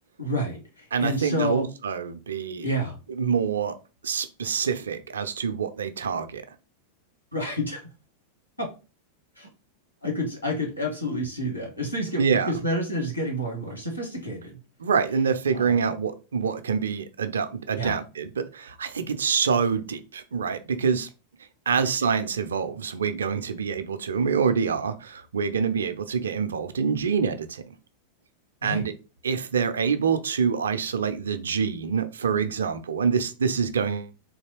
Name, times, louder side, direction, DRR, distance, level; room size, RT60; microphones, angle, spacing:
voice 1, 0.2-1.6 2.6-3.0 7.3-7.8 8.6-8.7 9.4-9.5 10.0-14.6 15.5-15.8 17.7-18.0 21.7-21.8 28.6-28.9, equal, 90° left, 1.3 m, -29 dB
voice 2, 0.9-2.7 3.1-3.7 4.0-6.4 12.2-12.5 14.8-21.1 21.7-27.7 28.6-28.9 29.2-34.1, right 6 dB, 70° right, 0.4 m, -26 dB
3.8 x 2.8 x 2.9 m
figure-of-eight pair, 90°, 0 cm